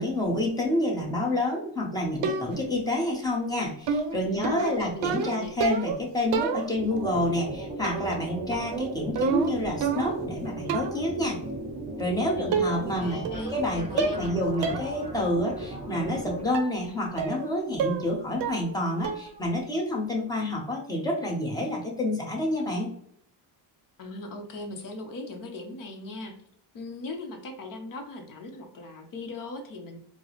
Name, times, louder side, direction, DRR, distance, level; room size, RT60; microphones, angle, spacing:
voice 1, 0.0-11.4 12.0-13.2 13.5-22.9, left 1 dB, 10° left, -2 dB, 0.7 m, -28 dB
sound 1, 2.2-2.8 3.9-6.0 6.3-7.0 7.8-8.3 8.5-10.3 10.7-11.1 12.0-12.1 12.5-13.0 13.3-13.7 14.0-14.3 14.6-14.9 15.3-15.4 16.5-16.8 17.2-17.5 17.8-18.1 18.4-18.8 19.0-19.4, right 6 dB, 70° right, 0.6 m, -29 dB
voice 2, 4.2-5.1 5.3-5.5 12.2-14.3 24.0-26.3 26.7-30.0, left 2 dB, 45° left, 4 dB, 0.7 m, -39 dB
sound 2, 6.7-16.5, right 1 dB, 15° right, 0.3 m, -37 dB
4.4 x 2.0 x 2.9 m, 0.67 s
cardioid pair, 155°, 46 cm